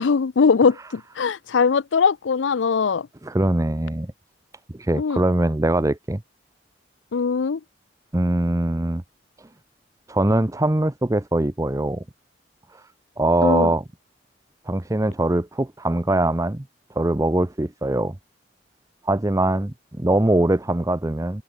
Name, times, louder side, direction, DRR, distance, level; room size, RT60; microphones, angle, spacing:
voice 1, 0.0-3.1 4.9-5.2 7.1-7.6 13.4-13.7, left 5 dB, 85° left, 0.5 m, -20 dB
voice 2, 3.2-4.1 4.7-6.2 8.1-9.0 10.1-12.0 12.7-12.8 13.2-13.8 14.7-16.6 17.0-18.2 19.0-21.4, right 1 dB, 15° right, 0.7 m, -22 dB
head